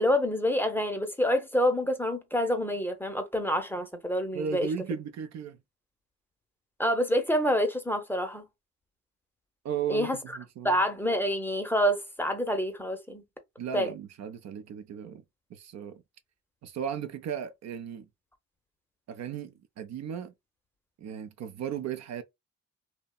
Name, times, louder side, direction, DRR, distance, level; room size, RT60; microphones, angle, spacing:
voice 1, 0.0-4.7 6.8-8.4 9.9-10.2 10.6-13.2 13.7-13.9, equal, 5° left, 0.6 m, -27 dB
voice 2, 4.3-5.6 9.6-10.8 13.6-15.2 15.5-16.0 16.6-18.1 19.1-20.3 21.0-22.2, right 8 dB, 60° right, 0.6 m, -36 dB
2.7 x 2.2 x 2.3 m
cardioid pair, 90°, 30 cm